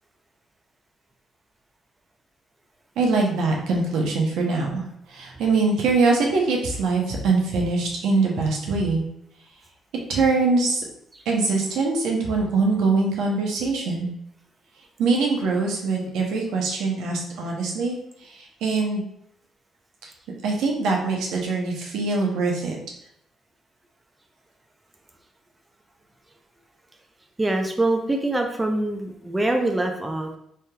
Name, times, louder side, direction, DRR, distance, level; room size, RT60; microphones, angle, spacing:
voice 1, 3.0-4.8 5.1-9.0 10.1-10.8 11.3-14.1 15.0-18.0 18.2-19.0 20.4-22.8, right 3 dB, 85° right, 0 dB, 0.7 m, -23 dB
voice 2, 27.4-30.3, right 2 dB, 15° right, 3 dB, 0.4 m, -24 dB
3.3 x 2.8 x 2.2 m, 0.74 s
cardioid pair, 90°, 0 cm